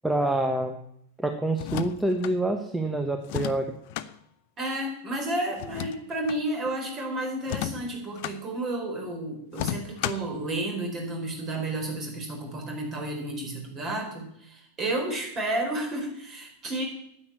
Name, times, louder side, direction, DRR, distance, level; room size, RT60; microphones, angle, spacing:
voice 1, 0.0-0.8 1.2-3.7, right 2 dB, 5° right, 5 dB, 1.0 m, -26 dB
sound 1, 1.5-2.4 3.2-4.1 5.6-6.4 7.4-8.4 9.5-10.3, left 13 dB, 45° left, 0.6 m, -33 dB
voice 2, 4.6-16.8, right 1 dB, 25° right, 2 dB, 4.4 m, -31 dB
9.7 x 8.7 x 8.5 m, 0.75 s
figure-of-eight pair, 90°, 0 cm